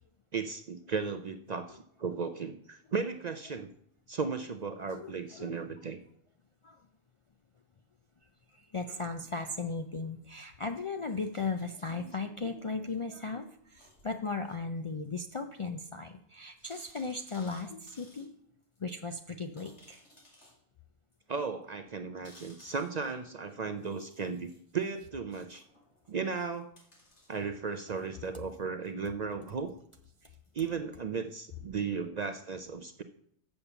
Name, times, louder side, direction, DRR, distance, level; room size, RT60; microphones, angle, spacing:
voice 1, 0.3-3.7 4.1-6.0 21.3-25.6 26.1-26.7 27.3-29.7 30.5-33.0, right 5 dB, 55° right, 7 dB, 0.5 m, -35 dB
voice 2, 4.9-5.6 6.6-6.8 8.5-18.3 18.8-20.0 30.2-30.3, left 3 dB, 50° left, 5 dB, 0.4 m, -37 dB
sound 1, 13.8-14.1 15.0-15.1 15.6-15.7 15.9-16.0 16.7-18.3 18.8-18.9 19.6-20.6 21.1-21.2 22.2-23.2 23.8-24.6 25.5-28.6 30.4-30.6, left 1 dB, 80° left, 2.6 m, -59 dB
7.2 x 6.6 x 6.8 m, 0.69 s
omnidirectional pair, 1.2 m